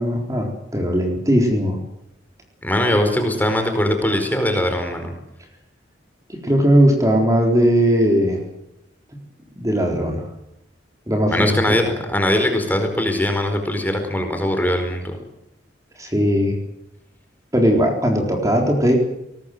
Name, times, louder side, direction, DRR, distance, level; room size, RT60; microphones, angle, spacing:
voice 1, 0.0-1.8 6.3-8.4 9.6-10.3 11.1-11.6 16.0-16.6 17.5-19.0, equal, 20° right, 2 dB, 4.0 m, -18 dB
voice 2, 2.6-5.1 11.3-11.8 12.1-15.2, left 1 dB, 10° left, 5 dB, 4.7 m, -21 dB
23.5 x 19.5 x 7.9 m, 0.81 s
head